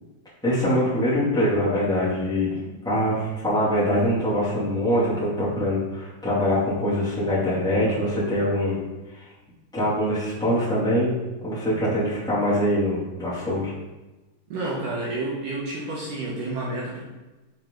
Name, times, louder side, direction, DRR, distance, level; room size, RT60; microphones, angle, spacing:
voice 1, 0.4-2.6 2.8-8.8 9.1-9.3 9.7-11.1 11.4-13.7, equal, 5° left, -10 dB, 0.5 m, -23 dB
voice 2, 14.5-17.0, right 2 dB, 70° right, -5 dB, 2.0 m, -30 dB
8.5 x 4.5 x 3.8 m, 1.1 s
omnidirectional pair, 5.1 m